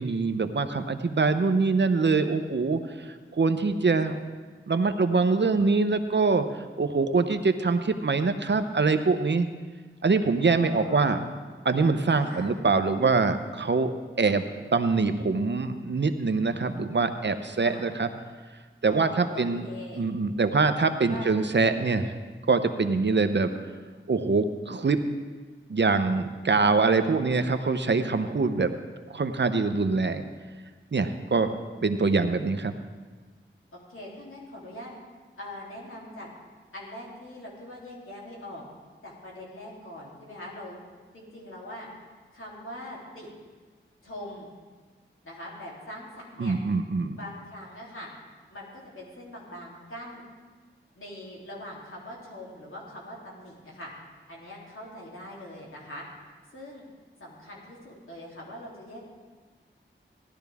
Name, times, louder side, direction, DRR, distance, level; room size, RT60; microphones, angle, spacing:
voice 1, 0.0-4.2 4.7-9.5 10.0-11.2 11.6-13.9 14.2-14.4 14.7-18.1 18.8-19.6 20.0-22.1 22.5-23.5 24.1-25.0 25.7-28.8 29.1-30.3 30.9-31.5 31.8-32.7 46.4-47.2, right 4 dB, 60° right, 9 dB, 0.8 m, -24 dB
voice 2, 10.4-11.3 12.2-12.6 14.2-14.3 17.5-17.9 18.9-20.1 21.1-21.4 22.9-23.3 33.7-34.9 35.4-36.3 36.7-38.6 39.0-40.8 41.1-41.9 42.3-43.3 44.0-44.5 45.2-46.5 47.1-48.1 48.5-50.2 50.9-53.9 54.3-56.0 56.5-56.8 57.2-59.0, left 1 dB, 80° left, -5 dB, 3.1 m, -42 dB
15.5 x 12.0 x 3.5 m, 1.4 s
wide cardioid pair, 50°, 21 cm